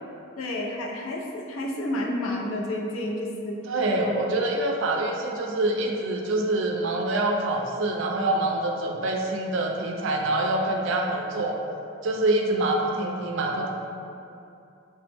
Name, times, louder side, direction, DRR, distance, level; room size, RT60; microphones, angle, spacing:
voice 1, 0.4-3.6 4.0-4.3, left 1 dB, 75° left, 0 dB, 0.4 m, -30 dB
voice 2, 3.7-11.6 12.0-13.7, right 2 dB, 65° right, 1 dB, 0.3 m, -25 dB
3.2 x 2.0 x 3.2 m, 2.7 s
head